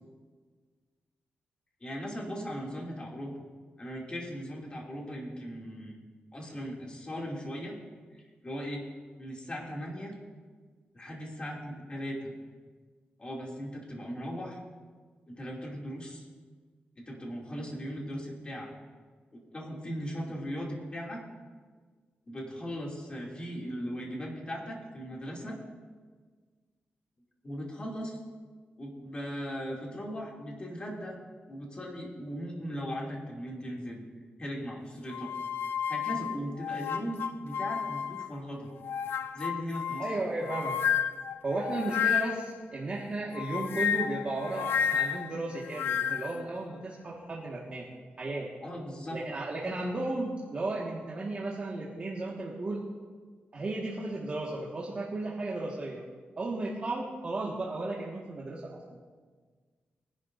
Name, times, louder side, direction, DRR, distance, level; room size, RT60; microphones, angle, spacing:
voice 1, 1.8-3.3 3.8-5.9 6.3-7.8 8.4-8.8 9.2-10.1 10.9-12.3 13.2-14.6 15.3-16.2 17.0-18.7 19.3-21.2 22.3-25.6 27.4-28.2 28.8-31.2 31.5-34.0 34.4-35.3 35.9-38.7 39.3-40.1 48.6-49.2, equal, 30° left, -2 dB, 2.7 m, -38 dB
sound 1, 35.1-38.4 38.8-42.6 43.3-46.4, left 8 dB, 80° left, 0.5 m, -31 dB
voice 2, 40.0-40.8 41.4-47.9 48.2-48.5 49.1-52.8 53.5-56.0 56.4-58.8, right 2 dB, 35° right, -4 dB, 1.7 m, -34 dB
22.0 x 11.0 x 2.6 m, 1.5 s
wide cardioid pair, 130°, 4 cm